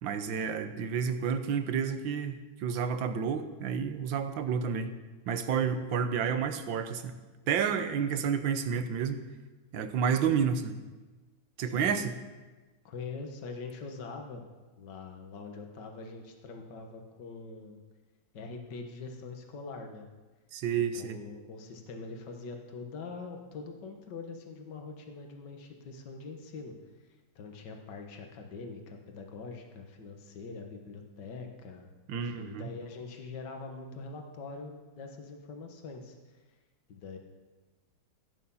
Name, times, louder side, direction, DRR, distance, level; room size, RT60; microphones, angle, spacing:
voice 1, 0.0-4.9 5.3-7.2 7.5-9.2 9.7-10.7 11.6-12.1 20.5-21.2 32.1-32.7, right 7 dB, 70° right, 9 dB, 1.7 m, -30 dB
voice 2, 11.6-11.9 12.8-14.4 14.8-17.8 18.3-20.1 20.7-26.7 27.4-36.4 36.9-37.2, left 4 dB, 60° left, 3 dB, 2.0 m, -43 dB
17.0 x 9.2 x 5.6 m, 1.2 s
omnidirectional pair, 2.2 m